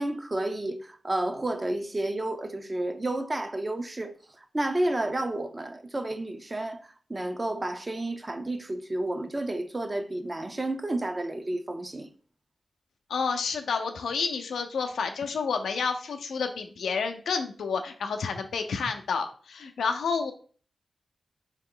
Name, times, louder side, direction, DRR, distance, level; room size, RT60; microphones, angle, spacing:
voice 1, 0.0-4.1 4.5-12.1, right 1 dB, 35° right, 0.6 m, -31 dB
voice 2, 13.1-20.3, left 5 dB, 85° left, 0.4 m, -30 dB
3.7 x 2.9 x 3.7 m
cardioid pair, 45°, 0 cm